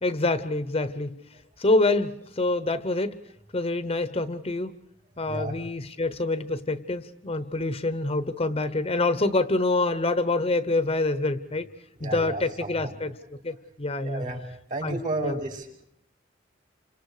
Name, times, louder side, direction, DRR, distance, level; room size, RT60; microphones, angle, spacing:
voice 1, 0.0-1.2 1.6-3.1 3.5-4.7 5.2-11.7 12.0-13.2 13.4-14.2 14.8-15.0 15.2-15.3, left 2 dB, 30° left, 12 dB, 1.0 m, -26 dB
voice 2, 12.0-12.9 14.0-14.4 14.7-15.7, right 2 dB, 45° right, 1 dB, 5.6 m, -32 dB
30.0 x 26.0 x 4.9 m, 0.68 s
head